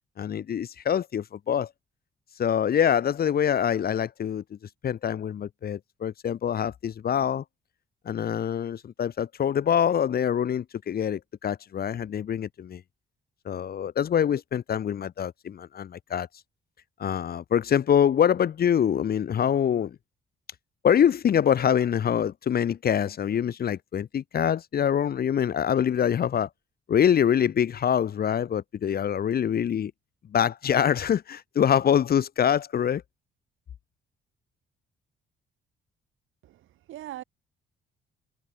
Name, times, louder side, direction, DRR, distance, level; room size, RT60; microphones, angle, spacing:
voice 1, 0.2-1.7 2.4-4.4 4.8-7.4 8.1-12.8 13.4-16.3 17.0-20.0 20.8-26.5 26.9-29.9 30.3-33.0, left 9 dB, 50° left, 1.0 m, -25 dB
voice 2, 36.4-37.2, right 14 dB, 85° right, 6.9 m, -41 dB
cardioid pair, 90°, 20 cm